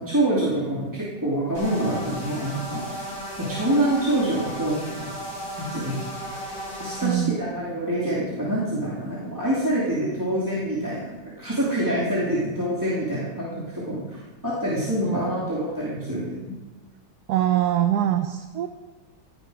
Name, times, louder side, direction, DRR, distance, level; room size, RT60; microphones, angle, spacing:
voice 1, 0.0-3.0 3.4-5.1 5.6-6.0 6.8-14.2 14.4-16.6, right 1 dB, 10° right, -6 dB, 2.6 m, -26 dB
sound 1, 1.5-7.1, equal, 85° left, 6.1 m, -35 dB
voice 2, 7.0-7.4 15.0-15.3 16.0-16.1 17.3-18.7, right 12 dB, 70° right, 7 dB, 1.2 m, -23 dB
16.5 x 10.5 x 5.1 m, 1.2 s
omnidirectional pair, 1.9 m